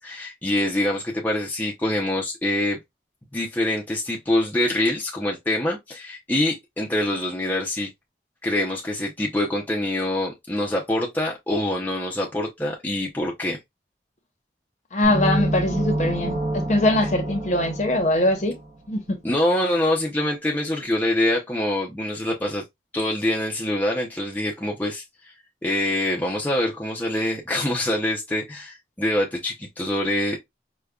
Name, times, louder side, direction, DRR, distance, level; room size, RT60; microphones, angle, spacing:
voice 1, 0.0-2.8 3.3-7.9 8.4-13.6 19.2-22.6 22.9-25.3 25.6-30.4, left 1 dB, 10° left, 0.5 m, -25 dB
voice 2, 14.9-18.5 18.9-19.2, left 1 dB, 40° left, 0.8 m, -22 dB
sound 1, 15.0-18.8, right 1 dB, 40° right, 0.6 m, -28 dB
4.9 x 2.2 x 2.2 m
head